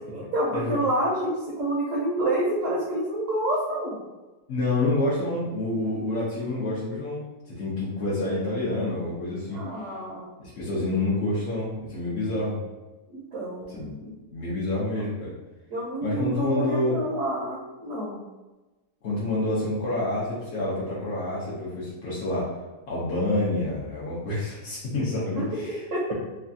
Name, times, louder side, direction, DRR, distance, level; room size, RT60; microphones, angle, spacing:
voice 1, 0.1-4.0 9.5-10.3 13.1-14.1 14.9-15.0 15.7-18.2 25.3-25.4 25.9-26.1, right 1 dB, 65° right, -4 dB, 0.9 m, -28 dB
voice 2, 4.5-7.2 7.4-9.9 10.4-12.6 13.8-13.9 14.3-15.3 16.0-17.0 19.0-22.5 22.9-25.8, left 2 dB, 60° left, -8 dB, 0.7 m, -28 dB
3.2 x 2.3 x 2.6 m, 1.1 s
omnidirectional pair, 1.7 m